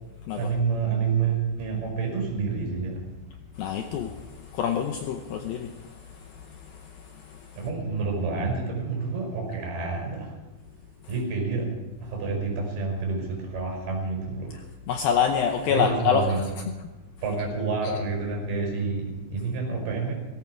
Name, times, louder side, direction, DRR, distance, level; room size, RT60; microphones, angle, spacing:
voice 1, 0.4-3.0 7.5-10.3 11.1-11.7 12.0-14.5 15.7-16.5 17.2-20.1, right 4 dB, 60° right, 1 dB, 7.1 m, -28 dB
voice 2, 3.6-4.1 4.6-5.7 14.9-16.2, left 8 dB, 80° left, 5 dB, 2.2 m, -25 dB
17.5 x 17.5 x 4.8 m, 1.1 s
omnidirectional pair, 5.1 m